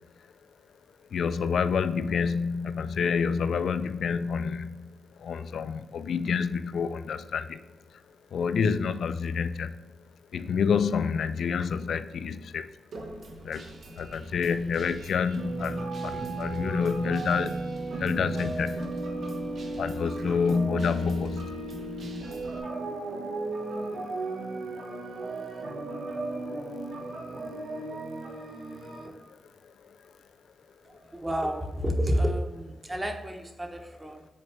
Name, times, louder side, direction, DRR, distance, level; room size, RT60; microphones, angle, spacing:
voice 1, 1.1-4.9 5.2-7.7 8.3-9.7 10.3-12.7 13.4-13.6 14.0-17.6 18.0-19.0 19.8-21.6 29.3-29.4 29.8-30.0, left 6 dB, 70° left, 12 dB, 0.4 m, -28 dB
Guitar, 12.9-22.6, right 1 dB, 70° right, 1.0 m, -46 dB
sound 1, 15.4-29.1, right 2 dB, 90° right, 1.3 m, -34 dB
voice 2, 30.8-34.3, equal, 15° right, 3 dB, 0.8 m, -30 dB
7.3 x 4.1 x 3.3 m, 1.1 s
wide cardioid pair, 145°, 0 cm